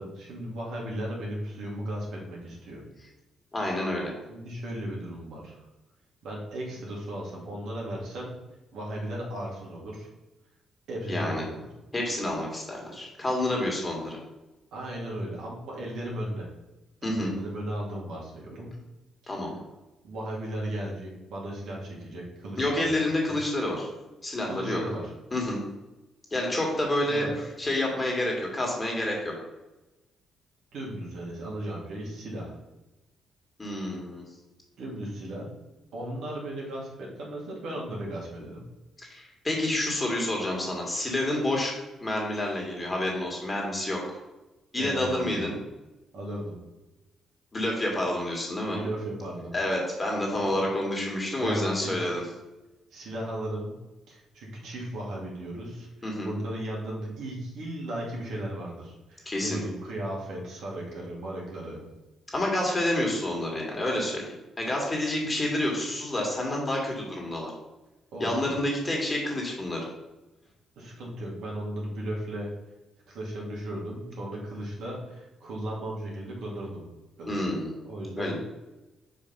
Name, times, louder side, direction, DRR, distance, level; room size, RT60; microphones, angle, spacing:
voice 1, 0.0-2.8 4.3-5.6 6.2-8.3 8.7-10.1 10.9-11.7 14.7-16.5 17.0-18.7 19.2-19.3 20.0-23.0 24.5-25.1 27.0-27.5 30.7-32.6 34.8-35.5 35.9-38.6 44.7-45.5 46.1-46.6 48.7-49.5 51.4-52.1 52.9-53.8 54.1-55.9 56.2-61.8 68.1-68.5 70.8-72.5 73.1-76.8 77.2-77.5 77.9-78.4, right 1 dB, 75° right, -3 dB, 2.4 m, -36 dB
voice 2, 3.5-4.1 11.1-11.4 11.9-14.2 17.0-17.3 19.3-19.6 22.6-23.9 24.2-24.8 25.3-25.6 26.3-27.3 27.6-29.3 33.6-34.2 39.0-41.7 42.0-44.2 44.7-45.5 47.5-48.8 49.5-52.2 56.0-56.3 59.3-59.6 62.3-64.3 64.6-67.5 68.2-69.8 77.3-77.7 78.2-78.4, left 1 dB, 20° left, -1 dB, 2.3 m, -28 dB
5.1 x 5.0 x 5.6 m, 1.1 s
cardioid pair, 90°, 0 cm